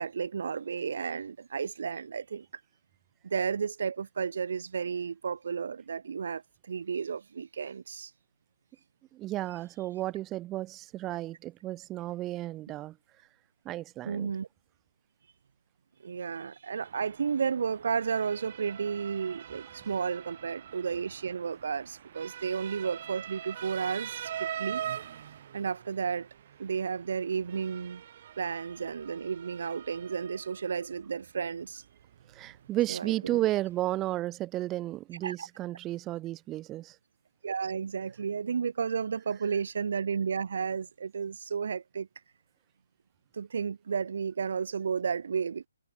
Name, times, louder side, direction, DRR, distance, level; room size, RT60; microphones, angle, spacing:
voice 1, 0.0-2.6 3.2-8.1 14.1-14.5 16.0-24.8 25.5-26.3 26.6-28.0 28.4-31.8 32.9-33.4 35.2-35.5 37.4-42.1 43.3-45.7, right 6 dB, 60° right, 0.7 m, -32 dB
voice 2, 9.1-13.0 13.7-14.3 32.3-37.0, right 15 dB, 15° right, 1.8 m, -33 dB
Motor vehicle (road) / Siren, 16.8-34.2, right 10 dB, 40° right, 2.1 m, -44 dB
hypercardioid pair, 155°, 0 cm